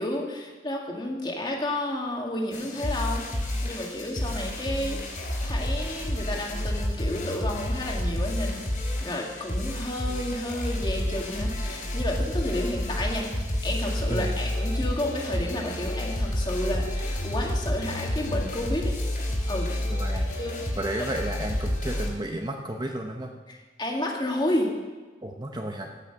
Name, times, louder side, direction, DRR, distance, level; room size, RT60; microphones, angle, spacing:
voice 1, 0.0-5.1 5.4-8.6 9.0-18.9 19.5-19.7 20.4-20.6 23.5-24.7, left 1 dB, 25° left, 0 dB, 1.9 m, -31 dB
sound 1, 2.5-22.1, left 1 dB, 50° left, 3.0 m, -30 dB
voice 2, 14.1-14.4 19.9-20.4 20.8-23.3 25.2-25.9, right 1 dB, 25° right, 3 dB, 0.8 m, -32 dB
15.0 x 6.2 x 8.1 m, 1.3 s
head